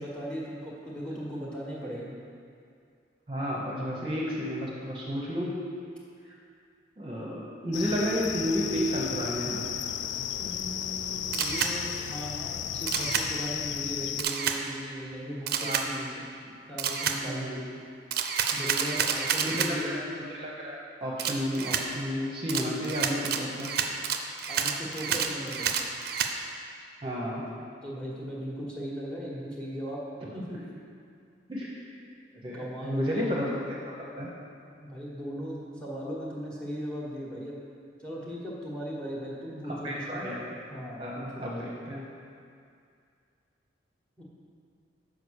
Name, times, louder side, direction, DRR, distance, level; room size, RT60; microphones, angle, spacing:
voice 1, 0.0-2.1 10.4-16.3 16.7-17.8 18.5-19.9 24.5-25.7 27.8-30.0 30.3-30.6 32.5-33.3 34.8-37.6 38.0-40.3 40.7-41.6 44.2-44.3, equal, 5° left, -4 dB, 1.3 m, -38 dB
voice 2, 3.3-5.6 6.2-6.3 7.0-9.6 15.6-15.8 16.4-16.5 17.2-17.6 19.4-23.7 27.0-27.4 31.5-31.8 32.4-33.8 34.2-34.3 39.7-40.4 41.0-42.0, equal, 25° right, -4 dB, 0.9 m, -32 dB
sound 1, 7.7-14.2, left 10 dB, 65° left, 0.3 m, -34 dB
Camera, 11.3-11.7 12.9-13.3 14.2-14.6 15.5-15.9 16.8-17.2 18.1-19.7 21.2-21.8 22.5-26.3, right 7 dB, 55° right, 0.5 m, -29 dB
6.8 x 5.0 x 6.4 m, 2.3 s
head